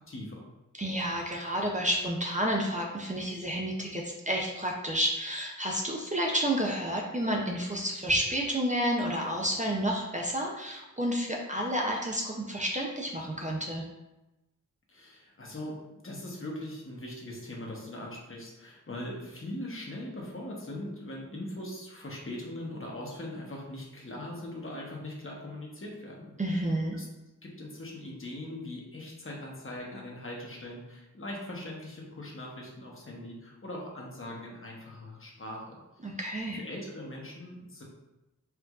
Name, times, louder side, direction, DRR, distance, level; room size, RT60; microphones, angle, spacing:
voice 1, 0.1-0.4 14.9-26.3 26.6-27.1 27.4-36.2 36.5-37.8, left 1 dB, 40° left, -2 dB, 0.9 m, -41 dB
voice 2, 0.8-13.8 26.4-27.0 36.0-36.6, equal, 25° right, -1 dB, 0.5 m, -30 dB
4.5 x 2.5 x 2.3 m, 0.99 s
wide cardioid pair, 60°, 31 cm